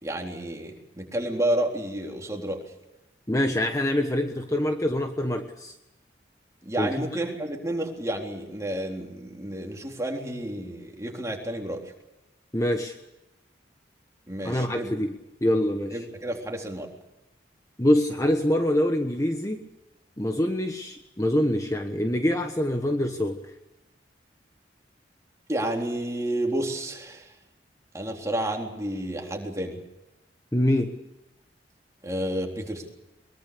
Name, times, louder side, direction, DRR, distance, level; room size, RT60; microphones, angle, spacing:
voice 1, 0.0-2.6 6.6-11.9 14.3-14.9 15.9-16.9 25.5-27.3 27.9-29.8 32.0-32.9, right 1 dB, 15° right, 1 dB, 3.8 m, -30 dB
voice 2, 3.3-5.7 6.8-6.9 12.5-12.9 14.4-15.1 15.4-16.0 17.8-19.6 20.2-23.5 30.5-30.9, left 1 dB, 20° left, 5 dB, 1.3 m, -25 dB
23.0 x 23.0 x 6.8 m, 0.97 s
head